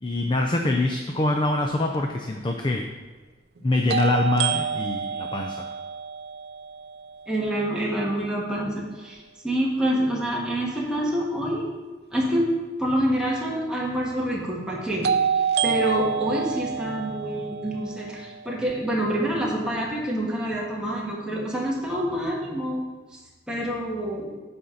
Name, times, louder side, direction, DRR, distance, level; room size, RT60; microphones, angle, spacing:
voice 1, 0.0-2.8 3.6-5.7, left 2 dB, 25° left, 3 dB, 0.5 m, -24 dB
sound 1, 1.9-2.0 3.9-7.8 15.0-19.1, right 7 dB, 65° right, 0.4 m, -28 dB
voice 2, 7.3-11.7 12.1-12.5 12.8-15.1 15.6-22.8 23.5-24.3, equal, 5° right, -4 dB, 1.6 m, -27 dB
9.4 x 4.3 x 6.5 m, 1.3 s
head